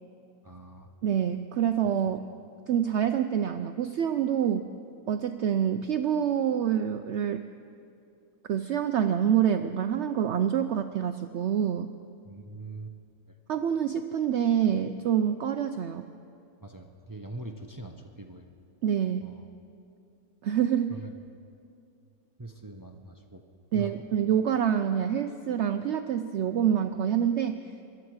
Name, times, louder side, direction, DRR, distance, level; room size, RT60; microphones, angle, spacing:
voice 1, 0.4-0.9 2.0-2.1 12.2-12.9 16.6-18.5 19.2-19.5 20.9-21.1 22.4-23.4 23.7-24.0, right 2 dB, 30° right, 3 dB, 0.4 m, -42 dB
voice 2, 1.0-2.2 2.7-4.7 5.1-7.4 8.5-11.9 13.5-16.0 18.8-19.3 20.4-21.0 23.7-27.6, right 9 dB, 70° right, 9 dB, 0.6 m, -26 dB
22.0 x 12.0 x 4.7 m, 2.5 s
omnidirectional pair, 1.6 m